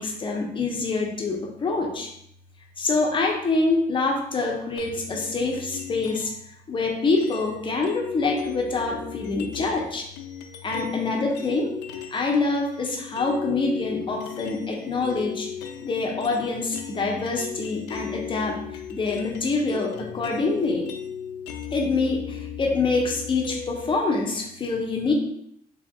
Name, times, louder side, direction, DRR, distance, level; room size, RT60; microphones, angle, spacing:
voice 1, 0.0-2.1 2.8-6.3 6.7-10.1 10.6-11.7 12.1-15.5 15.8-18.6 18.9-20.9 21.7-25.1, left 3 dB, 30° left, 1 dB, 0.8 m, -25 dB
sound 1, 4.8-6.5 7.2-12.2 12.5-24.0, left 8 dB, 80° left, 0.5 m, -37 dB
3.5 x 2.5 x 3.6 m, 0.74 s
cardioid pair, 110°, 17 cm